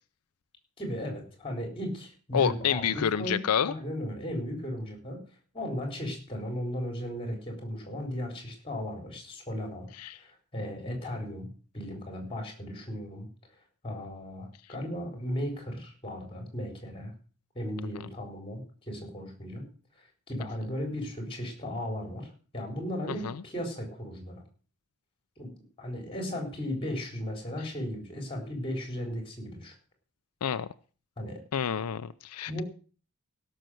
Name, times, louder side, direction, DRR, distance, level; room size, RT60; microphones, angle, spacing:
voice 1, 0.8-5.2 5.5-9.9 10.1-11.5 11.7-13.3 13.8-17.1 17.5-19.7 20.0-24.4 25.4-25.5 25.8-29.7 31.2-31.4 32.5-32.6, left 1 dB, 25° left, 4.1 m, -36 dB
voice 2, 2.3-3.7 10.0-10.2 23.1-23.4 30.4-30.7 31.5-32.6, left 8 dB, 85° left, 0.5 m, -28 dB
16.5 x 6.5 x 6.3 m
head